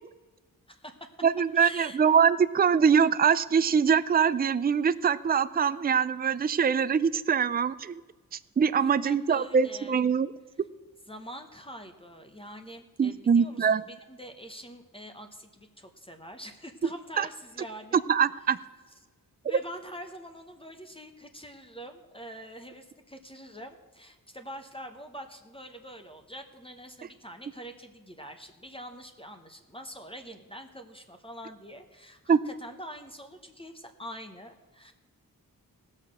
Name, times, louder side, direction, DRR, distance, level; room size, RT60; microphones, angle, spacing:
voice 1, 0.7-1.1 1.5-2.0 8.8-10.0 11.1-18.0 19.4-34.9, equal, 15° left, 6 dB, 1.0 m, -45 dB
voice 2, 1.2-8.0 8.3-10.3 13.0-13.8 17.2-17.3 18.1-18.6 32.3-32.4, right 6 dB, 25° right, 15 dB, 0.4 m, -23 dB
17.5 x 6.6 x 6.2 m, 1.2 s
wide cardioid pair, 100°, 36 cm